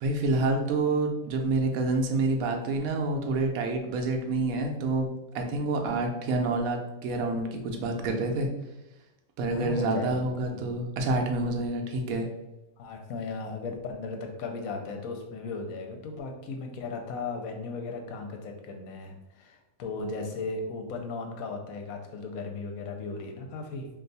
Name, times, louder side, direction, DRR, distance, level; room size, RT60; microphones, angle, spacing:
voice 1, 0.0-5.1 5.3-8.5 9.4-12.3, right 2 dB, 85° right, 2 dB, 1.0 m, -28 dB
voice 2, 9.5-10.7 12.8-23.9, left 3 dB, 85° left, 3 dB, 1.1 m, -36 dB
2.6 x 2.3 x 3.9 m, 0.95 s
omnidirectional pair, 1.5 m